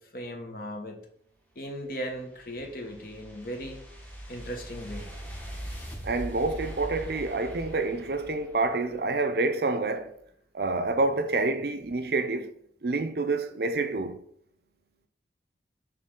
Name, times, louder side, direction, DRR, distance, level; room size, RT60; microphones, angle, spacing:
voice 1, 0.1-1.0 1.5-3.8 4.3-5.1, equal, 50° left, 1.1 m, -37 dB
sound 1, 1.9-9.1, equal, 10° left, 0.9 m, -41 dB
voice 2, 6.0-10.2 10.5-12.5 12.8-14.2, right 3 dB, 60° right, 0.5 m, -28 dB
6.7 x 3.8 x 3.7 m
head